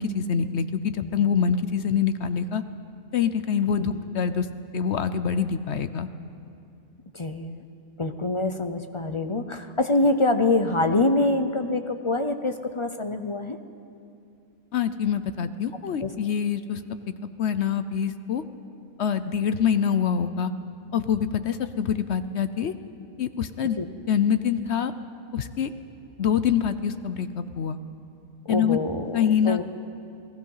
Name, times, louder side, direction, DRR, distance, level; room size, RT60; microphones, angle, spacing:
voice 1, 0.0-2.6 3.1-4.5 4.7-6.1 14.7-17.0 17.4-18.4 19.0-20.5 20.9-22.7 23.2-23.8 24.1-24.9 25.3-25.7 26.2-27.8 28.5-28.8 29.1-29.6, left 7 dB, 55° left, 11 dB, 0.9 m, -25 dB
voice 2, 7.1-7.6 8.0-13.6 16.0-16.1 23.8-23.9 28.5-29.6, left 2 dB, 30° left, 8 dB, 0.5 m, -25 dB
28.5 x 19.0 x 5.6 m, 2.6 s
omnidirectional pair, 1.5 m